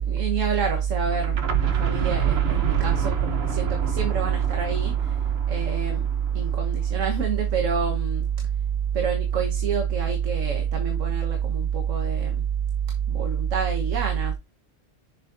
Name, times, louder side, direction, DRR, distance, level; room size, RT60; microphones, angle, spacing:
voice 1, 0.1-5.1 5.5-6.1 6.3-8.3 8.9-12.4 13.1-14.3, right 7 dB, 75° right, 1.6 m, -25 dB
sound 1, 1.1-6.9, right 7 dB, 55° right, 1.2 m, -29 dB
7.4 x 6.4 x 2.6 m
omnidirectional pair, 1.3 m